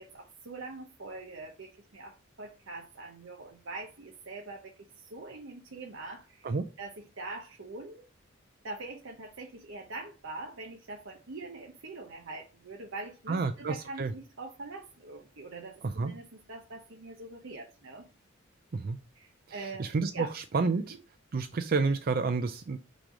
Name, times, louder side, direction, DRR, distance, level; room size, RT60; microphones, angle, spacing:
voice 1, 0.0-8.0 8.6-18.1 19.1-20.3 20.6-20.9, right 3 dB, 70° right, 2 dB, 0.9 m, -43 dB
voice 2, 13.3-14.1 15.8-16.1 18.7-19.0 19.5-21.0 21.3-22.8, right 4 dB, 45° right, 9 dB, 0.4 m, -30 dB
6.1 x 3.3 x 5.1 m, 0.33 s
head